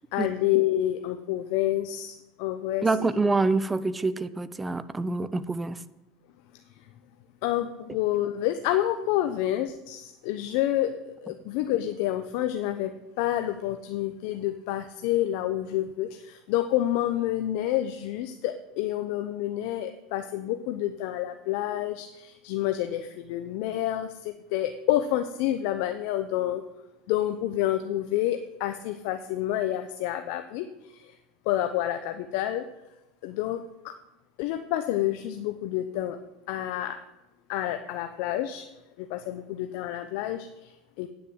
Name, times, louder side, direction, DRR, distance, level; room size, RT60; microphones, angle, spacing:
voice 1, 0.1-3.1 7.4-12.9 13.2-26.6 27.1-31.2 31.5-32.7 33.2-33.9 34.4-36.2 36.5-37.0 37.5-38.7 39.0-41.1, left 13 dB, 70° left, 8 dB, 0.7 m, -28 dB
voice 2, 2.8-5.8, right 3 dB, 15° right, 15 dB, 0.6 m, -26 dB
9.8 x 6.6 x 7.8 m, 0.95 s
supercardioid pair, 105°, 0 cm